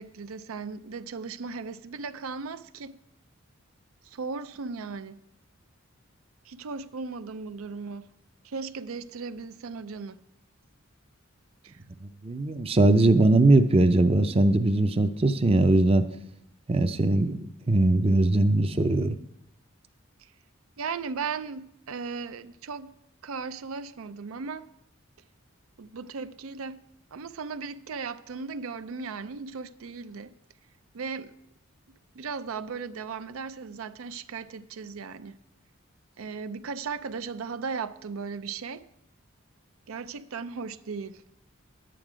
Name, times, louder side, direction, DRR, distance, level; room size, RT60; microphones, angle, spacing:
voice 1, 0.0-3.0 4.1-5.2 6.5-8.1 8.4-10.2 11.6-11.8 20.8-22.9 23.2-24.7 25.8-26.8 27.1-30.3 30.9-31.3 32.2-35.4 36.2-38.9 39.9-41.2, right 5 dB, 85° right, 0.5 m, -36 dB
voice 2, 12.0-16.1 16.7-19.2, right 2 dB, 30° right, 0.5 m, -21 dB
10.5 x 9.1 x 5.0 m
head